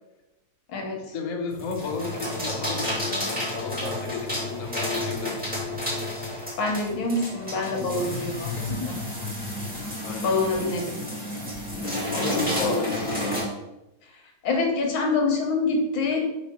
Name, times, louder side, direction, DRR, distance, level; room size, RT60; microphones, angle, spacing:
voice 1, 0.9-5.4 10.0-10.4 12.1-13.4, left 4 dB, 50° left, 1 dB, 1.1 m, -33 dB
sound 1, 1.5-13.5, left 1 dB, 5° right, 2.0 m, -31 dB
voice 2, 6.6-9.0 10.2-11.0 12.3-12.7 14.4-16.2, left 3 dB, 75° left, 2 dB, 1.9 m, -26 dB
5.8 x 3.6 x 5.9 m, 0.95 s
omnidirectional pair, 2.3 m